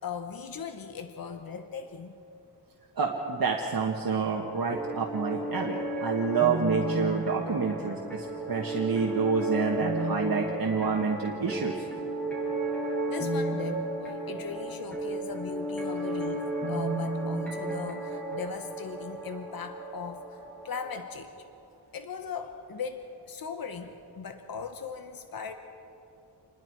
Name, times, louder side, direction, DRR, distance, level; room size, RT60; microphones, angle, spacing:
voice 1, 0.0-2.2 13.1-20.4 20.6-21.3 21.9-25.5, left 6 dB, 60° left, 7 dB, 1.1 m, -39 dB
voice 2, 3.0-11.8, right 5 dB, 60° right, -1 dB, 1.5 m, -28 dB
sound 1, 4.5-21.0, right 1 dB, 5° left, 5.6 m, -33 dB
27.5 x 21.0 x 4.7 m, 2.8 s
wide cardioid pair, 145°, 41 cm